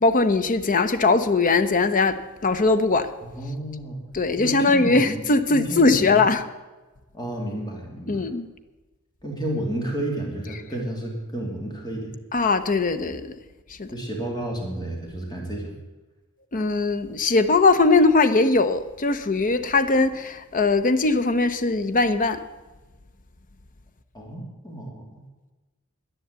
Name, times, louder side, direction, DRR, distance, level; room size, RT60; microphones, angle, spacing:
voice 1, 0.0-3.1 4.1-6.4 8.1-8.5 12.3-13.3 13.8-13.9 16.5-22.4, left 3 dB, 40° left, 0.8 m, -20 dB
voice 2, 3.2-4.0 4.4-5.2 5.5-6.2 7.1-8.3 9.2-12.1 13.9-15.7 24.1-25.2, right 1 dB, 20° left, 2.8 m, -31 dB
11.0 x 10.5 x 8.2 m
head